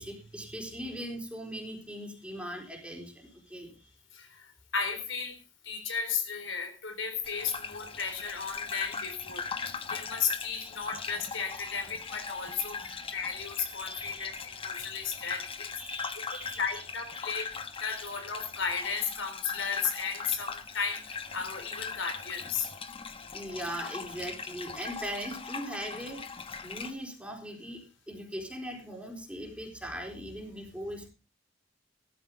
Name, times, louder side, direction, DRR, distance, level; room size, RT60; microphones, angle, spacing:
voice 1, 0.0-3.7 10.6-11.0 12.8-13.0 13.7-14.3 15.8-16.8 17.1-17.5 17.9-18.1 23.3-26.3 26.6-31.1, equal, 5° right, 1 dB, 4.0 m, -40 dB
voice 2, 4.1-5.4 5.6-16.1 16.5-17.5 17.8-22.7, left 6 dB, 85° left, 6 dB, 4.0 m, -34 dB
Gurgling / Bathtub (filling or washing), 7.2-26.9, left 5 dB, 30° left, 1.1 m, -40 dB
17.0 x 13.5 x 3.6 m, 0.32 s
head